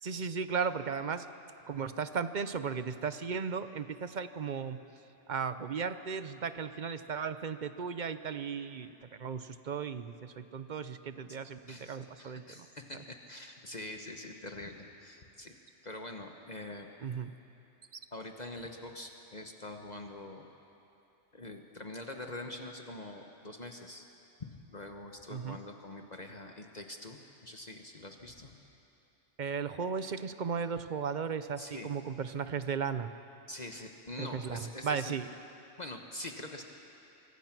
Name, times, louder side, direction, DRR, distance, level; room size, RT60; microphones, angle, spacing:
voice 1, 0.0-1.2 1.7-4.8 5.3-8.9 9.2-12.7 17.0-17.3 25.3-25.6 29.4-33.1 34.2-35.3, right 6 dB, 45° right, 11 dB, 0.8 m, -36 dB
voice 2, 11.7-15.5 15.8-16.9 18.1-20.5 21.3-24.1 24.4-28.5 31.6-31.9 33.5-35.1 35.8-36.6, left 2 dB, 35° left, 3 dB, 1.3 m, -44 dB
25.0 x 24.5 x 6.1 m, 2.9 s
omnidirectional pair, 1.2 m